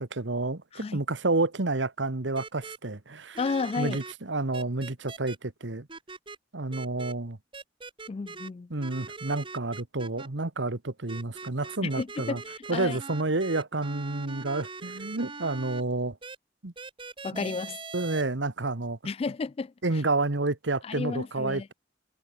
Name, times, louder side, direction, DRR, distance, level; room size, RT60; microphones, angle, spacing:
voice 1, 0.0-3.4 3.8-5.9 6.5-7.4 8.7-12.4 12.7-16.2 16.6-16.7 17.3-17.5 17.9-19.0 19.8-21.7, right 2 dB, 70° right, 1.5 m, -30 dB
sound 1, 2.3-2.8 3.3-4.1 4.5-5.4 5.9-6.4 6.7-7.1 7.5-8.5 8.8-10.3 11.1-15.8 16.2-16.4 16.8-18.2, right 4 dB, 25° right, 1.9 m, -42 dB
voice 2, 3.4-4.0 8.1-8.7 11.8-12.4 12.7-13.0 17.2-17.8 19.1-19.7 20.8-21.7, left 4 dB, 30° left, 0.3 m, -32 dB
head